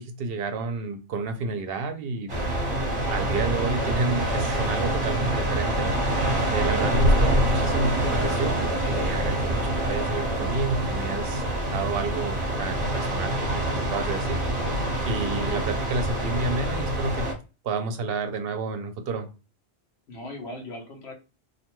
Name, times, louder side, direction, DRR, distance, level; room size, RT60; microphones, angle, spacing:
voice 1, 0.0-2.5 3.1-11.4 11.7-17.3 17.6-19.3, right 3 dB, 70° right, 7 dB, 0.7 m, -30 dB
sound 1, 2.3-17.3, right 1 dB, 30° right, 1.0 m, -26 dB
voice 2, 20.1-21.1, left 2 dB, 90° left, 2 dB, 1.1 m, -40 dB
2.6 x 2.2 x 2.9 m, 0.31 s
omnidirectional pair, 1.1 m